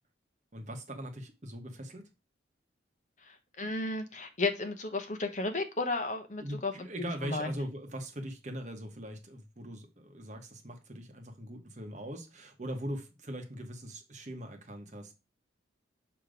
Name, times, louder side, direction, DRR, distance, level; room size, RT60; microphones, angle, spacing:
voice 1, 0.5-2.1 6.4-15.1, equal, 40° right, 1.1 m, -41 dB
voice 2, 3.6-6.7 7.0-7.5, left 3 dB, 40° left, 0.9 m, -33 dB
6.4 x 3.0 x 5.0 m
head